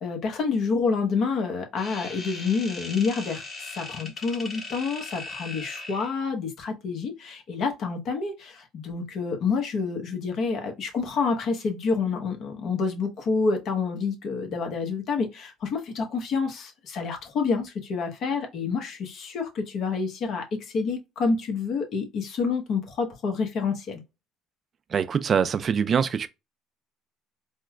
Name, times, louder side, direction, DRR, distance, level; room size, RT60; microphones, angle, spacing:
voice 1, 0.0-24.0, left 4 dB, 60° left, 1.0 m, -28 dB
sound 1, 1.8-6.2, left 2 dB, 35° left, 1.5 m, -38 dB
voice 2, 24.9-26.3, right 7 dB, 45° right, 0.3 m, -24 dB
4.3 x 2.2 x 2.2 m
supercardioid pair, 75°, 0 cm